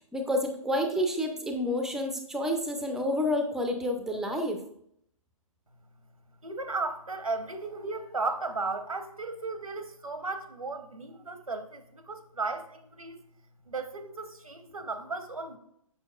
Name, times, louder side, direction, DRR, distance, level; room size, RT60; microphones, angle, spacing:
voice 1, 0.0-4.6, left 1 dB, ahead, 4 dB, 0.5 m, -29 dB
voice 2, 6.4-13.2 13.7-15.6, right 3 dB, 85° right, 8 dB, 0.9 m, -35 dB
6.9 x 5.8 x 2.3 m, 0.70 s
figure-of-eight pair, 125°, 18 cm